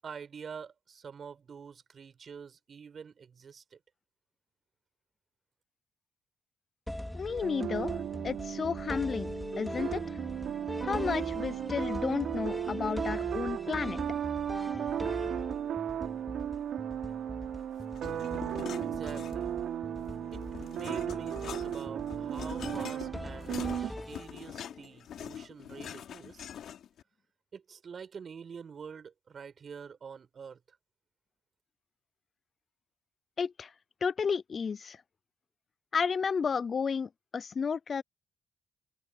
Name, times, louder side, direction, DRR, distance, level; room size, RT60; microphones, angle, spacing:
voice 1, 0.0-3.8 18.8-19.5 20.3-20.4 20.7-26.5 27.5-30.6, right 6 dB, 45° right, 7.5 m, -46 dB
sound 1, 6.9-24.7, left 1 dB, 5° left, 3.3 m, -42 dB
voice 2, 7.1-7.9 8.2-9.3 9.6-10.0 10.8-14.0 33.4-33.7 34.0-35.0 35.9-38.0, left 6 dB, 45° left, 0.3 m, -32 dB
sound 2, 7.3-23.9, right 10 dB, 70° right, 3.1 m, -35 dB
sound 3, 17.9-19.6 20.0-27.0, left 9 dB, 70° left, 3.9 m, -44 dB
cardioid pair, 90°, 0 cm